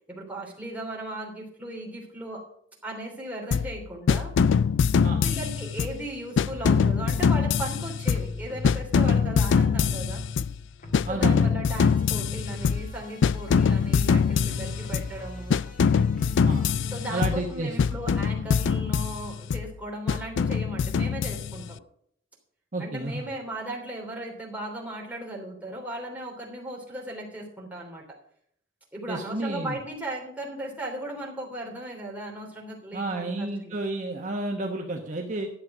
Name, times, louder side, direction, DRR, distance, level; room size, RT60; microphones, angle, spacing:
voice 1, 0.1-2.4 2.8-4.3 5.1-10.2 11.1-15.6 16.9-21.8 22.8-28.1 28.9-33.8, right 1 dB, 10° right, -3 dB, 3.1 m, -37 dB
sound 1, 3.5-3.8 4.1-6.0 6.4-8.4 8.6-10.6 10.9-12.9 13.2-15.2 15.5-17.5 17.8-19.7 20.1-21.7, left 6 dB, 65° left, 0.3 m, -24 dB
sound 2, 6.5-7.6 8.1-10.5 10.8-17.1, left 1 dB, 45° left, 1.7 m, -40 dB
voice 2, 11.1-11.6 16.4-16.7 17.1-17.8 22.7-23.3 29.1-29.8 32.9-35.5, right 2 dB, 40° right, 1 dB, 1.1 m, -31 dB
11.5 x 7.7 x 5.9 m, 0.66 s
head